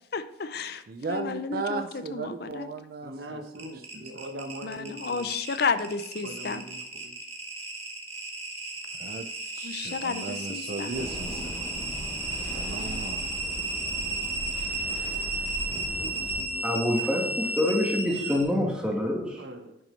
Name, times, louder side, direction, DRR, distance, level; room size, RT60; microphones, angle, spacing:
voice 1, 0.1-0.8 1.1-2.7 4.6-6.6 9.6-10.9, left 5 dB, 55° left, 11 dB, 0.5 m, -32 dB
voice 2, 0.9-3.7 3.9-4.2 9.0-9.3 9.5-11.6 12.6-13.3, right 3 dB, 50° right, 6 dB, 0.5 m, -36 dB
voice 3, 3.0-5.3 6.2-7.1 16.0-16.6 19.4-19.8, right 1 dB, 70° right, 6 dB, 1.0 m, -42 dB
sound 1, 3.5-18.4, right 2 dB, 30° right, 1.7 m, -34 dB
sound 2, 10.9-16.4, left 1 dB, 25° left, 1.2 m, -38 dB
voice 4, 16.6-19.4, left 1 dB, 5° right, -1 dB, 1.5 m, -26 dB
10.5 x 6.0 x 3.2 m, 0.88 s
head